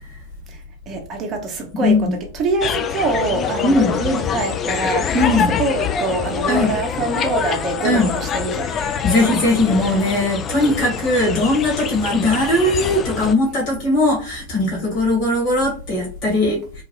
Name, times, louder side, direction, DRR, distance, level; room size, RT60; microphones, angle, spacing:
voice 1, 0.9-2.1 2.3-8.7, right 3 dB, 30° right, 0.9 m, -24 dB
voice 2, 1.8-2.2 3.6-4.0 5.1-5.5 6.5-6.8 7.8-8.1 8.7-16.8, left 2 dB, 45° left, 1.4 m, -19 dB
sound 1, 2.6-13.3, left 7 dB, 25° left, 0.3 m, -25 dB
3.1 x 2.2 x 3.1 m
figure-of-eight pair, 90°, 0 cm